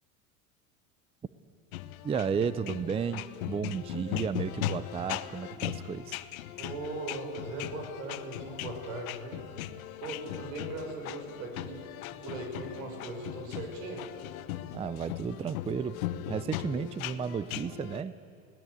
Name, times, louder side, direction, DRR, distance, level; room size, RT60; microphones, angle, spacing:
sound 1, 1.7-18.0, left 13 dB, 80° left, 0.9 m, -39 dB
voice 1, 2.0-6.2 14.7-16.0 16.3-18.2, right 6 dB, 15° right, 16 dB, 0.4 m, -33 dB
voice 2, 6.6-9.5 10.0-11.8 12.1-14.0, right 2 dB, 85° right, 2 dB, 6.3 m, -39 dB
21.5 x 17.5 x 8.2 m, 2.9 s
supercardioid pair, 105°, 41 cm